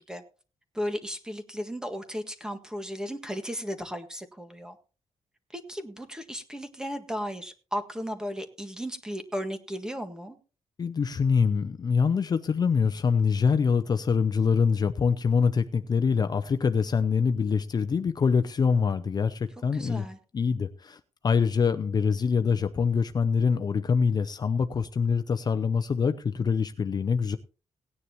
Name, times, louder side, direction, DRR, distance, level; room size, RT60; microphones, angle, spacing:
voice 1, 0.7-4.8 5.5-10.4 19.7-20.2, equal, 5° right, 1.7 m, -35 dB
voice 2, 10.8-20.1 20.3-27.4, left 5 dB, 35° left, 0.6 m, -25 dB
18.0 x 9.8 x 3.0 m
wide cardioid pair, 135°, 11 cm